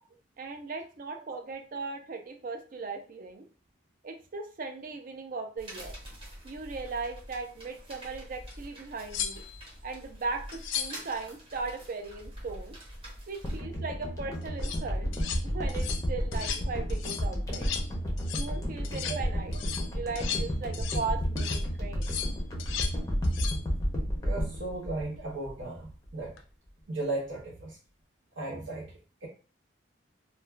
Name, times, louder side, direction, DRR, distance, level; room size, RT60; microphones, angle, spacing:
voice 1, 0.4-3.5 4.0-5.9 6.4-9.4 9.8-12.8 13.3-15.1 15.4-17.7 18.3-19.6 19.9-22.1, right 4 dB, 45° right, 5 dB, 0.4 m, -38 dB
sound 1, 5.6-13.6, equal, 30° right, 0.8 m, -46 dB
sound 2, 8.5-8.6 9.1-9.7 10.5-11.1 14.4-14.8 15.1-15.4 15.7-16.0 16.3-16.6 16.9-17.3 17.5-17.9 18.2-18.5 18.8-19.2 19.5-21.1 21.4-21.6 22.0-23.0 23.2-23.6 26.2-26.4, left 8 dB, 75° left, 0.4 m, -36 dB
sound 3, 13.4-25.8 26.1-26.2, equal, 15° left, 0.5 m, -32 dB
voice 2, 24.2-26.3 26.9-27.8 28.4-28.9 29.2-29.3, right 2 dB, 85° right, -5 dB, 0.7 m, -36 dB
2.3 x 2.1 x 3.1 m, 0.37 s
head